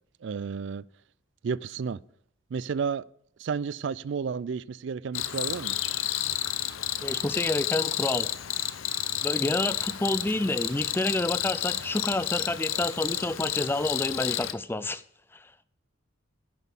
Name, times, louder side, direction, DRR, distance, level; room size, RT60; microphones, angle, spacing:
voice 1, 0.2-0.8 1.4-2.0 2.5-3.1 3.4-5.8, right 6 dB, 60° right, 0.3 m, -31 dB
Cricket, 5.1-14.5, left 12 dB, 75° left, 0.6 m, -31 dB
voice 2, 7.0-8.3 9.2-15.0 15.3-15.5, left 2 dB, 10° left, 0.4 m, -29 dB
11.0 x 6.2 x 7.2 m
head